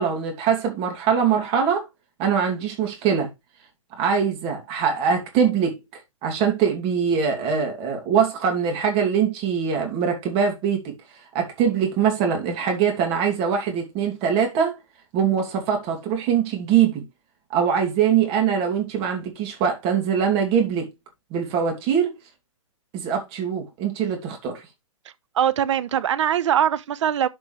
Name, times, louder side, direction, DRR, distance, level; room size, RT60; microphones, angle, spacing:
voice 1, 0.0-1.9 2.2-3.3 4.0-5.8 6.2-10.9 11.3-14.8 15.1-17.0 17.5-20.9 21.3-22.1 22.9-24.6, right 7 dB, 30° right, 2.6 m, -22 dB
voice 2, 25.3-27.3, right 9 dB, 60° right, 0.9 m, -21 dB
12.0 x 5.2 x 3.3 m
hypercardioid pair, 125°, 17 cm